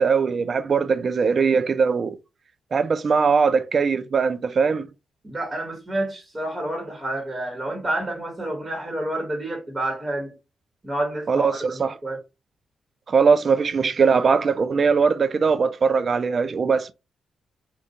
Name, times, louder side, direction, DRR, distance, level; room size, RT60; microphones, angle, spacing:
voice 1, 0.0-2.2 2.7-4.9 11.3-11.9 13.1-16.9, right 5 dB, 45° right, 0.4 m, -20 dB
voice 2, 5.2-10.3 10.8-12.2, right 1 dB, 20° right, 1.3 m, -29 dB
3.7 x 2.3 x 4.0 m
cardioid pair, 95°, 0 cm